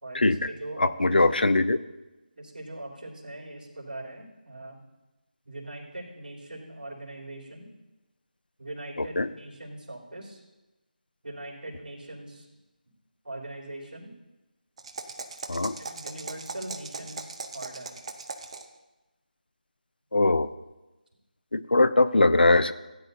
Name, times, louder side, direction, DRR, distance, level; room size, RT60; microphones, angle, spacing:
voice 1, 0.0-1.4 2.3-4.8 5.4-7.7 8.6-10.4 11.2-12.5 13.2-14.1 15.7-18.0, right 1 dB, 65° right, -3 dB, 3.4 m, -41 dB
voice 2, 0.8-1.8 9.2-9.3 15.5-15.7 20.1-20.5 21.5-22.7, left 2 dB, 80° left, 13 dB, 0.6 m, -21 dB
sound 1, 14.8-18.8, right 4 dB, 40° right, 0.8 m, -39 dB
16.5 x 9.8 x 2.7 m, 1.1 s
figure-of-eight pair, 160°, 5 cm